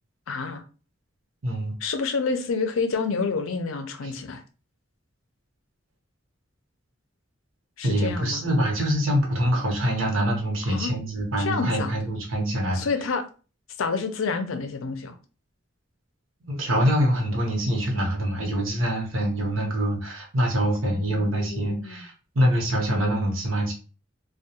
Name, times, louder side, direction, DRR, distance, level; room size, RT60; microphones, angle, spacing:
voice 1, 0.3-0.6 1.8-4.4 7.8-8.5 10.7-10.9 11.4-11.9 12.7-13.2 13.8-15.2 20.9-22.0, left 4 dB, 90° left, 0.5 m, -28 dB
voice 2, 1.4-1.7 4.0-4.1 7.8-12.8 16.4-23.7, equal, 85° right, 0.9 m, -25 dB
2.2 x 2.2 x 2.8 m
head